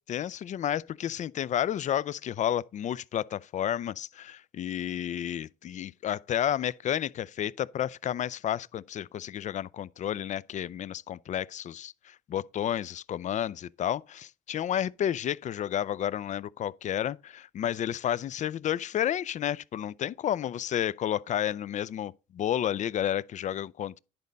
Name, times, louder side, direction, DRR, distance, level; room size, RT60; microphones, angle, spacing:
voice 1, 0.1-24.0, left 10 dB, 50° left, 0.4 m, -31 dB
10.5 x 4.0 x 5.2 m
supercardioid pair, 65°, 16 cm